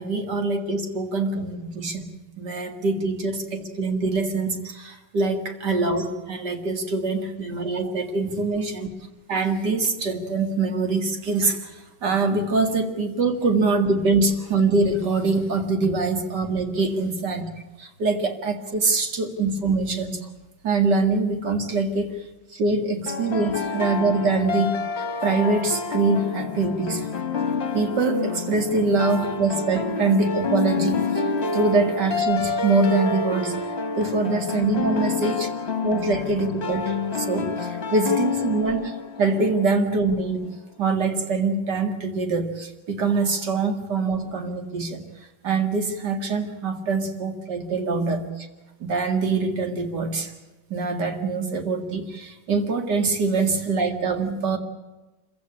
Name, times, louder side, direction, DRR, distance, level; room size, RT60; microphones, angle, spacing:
voice 1, 0.0-8.9 9.3-11.7 12.0-17.5 17.8-20.2 20.6-22.2 22.5-24.7 25.2-27.1 27.7-31.1 31.5-33.6 34.0-35.5 35.8-45.0 45.4-48.5 48.8-50.3 50.7-54.6, right 3 dB, 70° right, 6 dB, 2.8 m, -24 dB
sound 1, 23.1-39.9, left 4 dB, 40° left, 1.3 m, -28 dB
26.0 x 16.0 x 8.5 m, 1.1 s
omnidirectional pair, 1.9 m